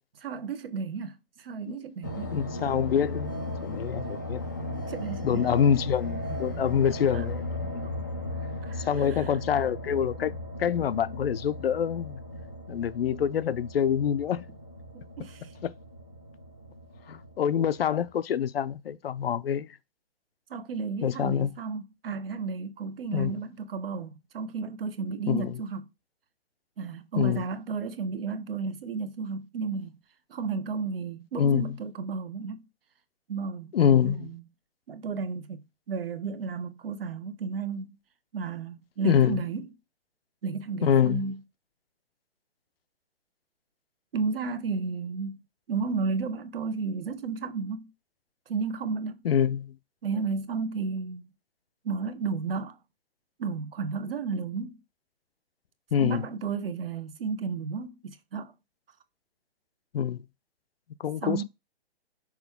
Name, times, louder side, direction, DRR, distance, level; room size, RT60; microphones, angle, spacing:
voice 1, 0.2-2.3 4.9-5.5 7.1-7.3 7.8-7.9 8.6-9.4 14.9-15.5 20.5-25.9 26.8-29.9 30.3-32.6 33.3-34.4 34.9-38.0 38.3-39.7 40.4-41.4 44.1-45.4 45.7-47.9 48.5-49.2 50.0-51.3 51.8-52.8 53.4-54.8 55.9-58.5 61.2-61.4, right 5 dB, 60° right, 1.0 m, -33 dB
sound 1, 2.0-18.1, left 1 dB, 20° left, 0.4 m, -36 dB
voice 2, 2.3-3.3 3.6-4.4 5.2-7.9 8.8-10.3 10.6-12.2 12.7-14.4 15.6-15.7 17.1-19.7 21.0-21.5 23.1-23.3 25.3-25.6 27.2-27.4 31.4-31.7 33.7-34.3 39.0-39.4 40.8-41.2 49.2-49.7 55.9-56.2 59.9-60.2 61.0-61.4, left 8 dB, 60° left, 0.6 m, -26 dB
6.2 x 4.7 x 3.5 m
hypercardioid pair, 170°, 32 cm